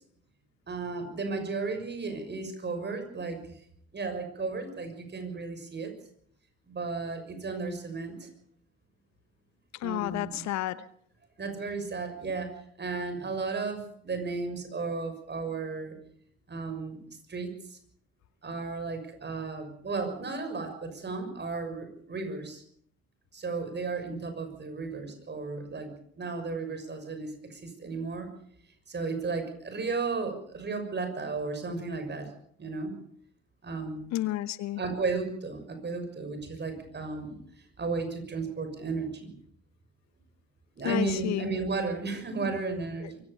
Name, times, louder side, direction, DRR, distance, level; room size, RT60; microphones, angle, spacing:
voice 1, 0.7-3.4 3.9-5.9 6.7-8.3 9.8-10.4 11.4-15.9 16.5-17.0 17.3-17.8 18.4-22.6 23.3-28.3 28.9-32.3 32.6-32.9 33.6-34.1 34.8-37.4 37.8-39.3 40.8-43.2, right 4 dB, 35° right, 7 dB, 6.6 m, -34 dB
voice 2, 9.8-10.8 34.1-34.8 40.8-41.5 43.0-43.1, left 14 dB, 60° left, 16 dB, 1.0 m, -31 dB
24.0 x 16.0 x 6.9 m, 0.63 s
hypercardioid pair, 55°, 32 cm